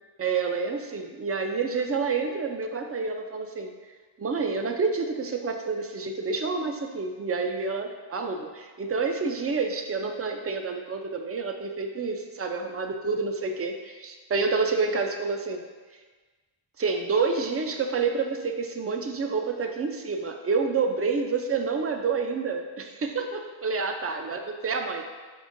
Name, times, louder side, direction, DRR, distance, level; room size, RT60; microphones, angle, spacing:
voice 1, 0.2-3.7 4.2-15.6 16.8-25.0, right 4 dB, 30° right, 4 dB, 0.4 m, -28 dB
5.3 x 3.5 x 2.5 m, 1.4 s
wide cardioid pair, 90°, 50 cm